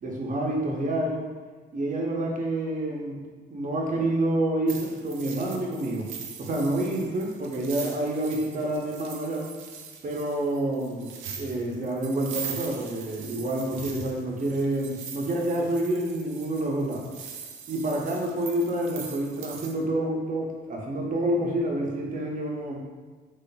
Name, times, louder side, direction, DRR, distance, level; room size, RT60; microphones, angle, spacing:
voice 1, 0.0-1.3 1.7-3.2 3.5-6.1 6.4-9.5 10.0-17.1 17.7-22.8, right 1 dB, 40° right, -1 dB, 0.7 m, -28 dB
sound 1, 4.7-19.7, right 7 dB, 80° right, 0.5 m, -42 dB
3.9 x 3.2 x 2.2 m, 1.4 s
cardioid pair, 90°, 20 cm